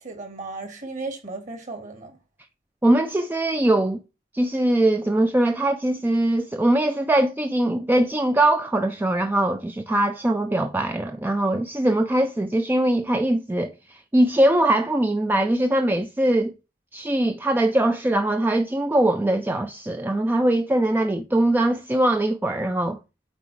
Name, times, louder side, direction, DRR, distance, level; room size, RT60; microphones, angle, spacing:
voice 1, 0.0-2.2, right 3 dB, 40° right, 1.6 m, -35 dB
voice 2, 2.8-4.0 4.3-16.5 16.9-23.0, right 1 dB, 10° right, 0.3 m, -21 dB
7.4 x 4.2 x 3.1 m
head